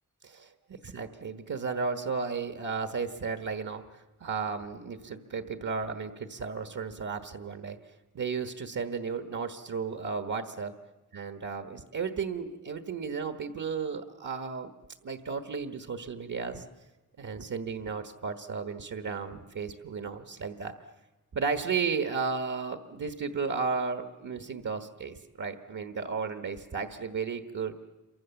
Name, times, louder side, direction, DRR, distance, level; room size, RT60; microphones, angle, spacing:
voice 1, 0.2-10.7 11.1-14.7 15.0-16.6 17.2-20.8 21.3-27.8, right 5 dB, 70° right, 8 dB, 1.3 m, -34 dB
28.0 x 24.0 x 7.1 m, 1.1 s
wide cardioid pair, 145°, 31 cm